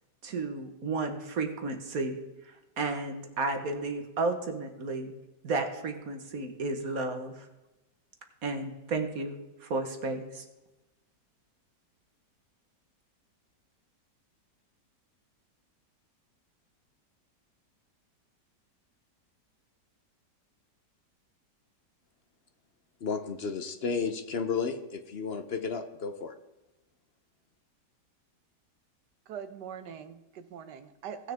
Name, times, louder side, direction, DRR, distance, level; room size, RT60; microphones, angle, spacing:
voice 1, 0.2-2.2 2.4-5.1 5.4-7.5 8.4-10.4, right 3 dB, 55° right, 5 dB, 1.6 m, -33 dB
voice 2, 23.0-26.4, left 5 dB, 50° left, 8 dB, 0.7 m, -33 dB
voice 3, 29.3-31.3, right 8 dB, 75° right, 10 dB, 1.4 m, -42 dB
18.0 x 6.6 x 3.5 m, 1.0 s
omnidirectional pair, 1.9 m